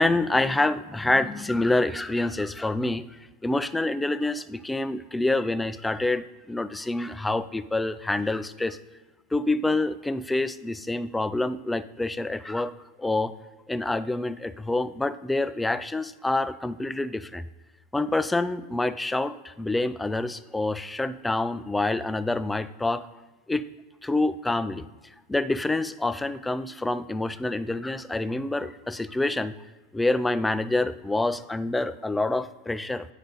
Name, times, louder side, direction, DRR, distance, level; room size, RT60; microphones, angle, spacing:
voice 1, 0.0-3.1 3.4-8.8 9.3-12.7 13.0-13.3 13.7-17.4 17.9-23.0 23.5-23.7 24.0-24.9 25.3-29.5 29.9-33.1, left 2 dB, 10° left, 13 dB, 0.4 m, -27 dB
10.0 x 5.0 x 4.0 m, 1.2 s
hypercardioid pair, 100°, 0 cm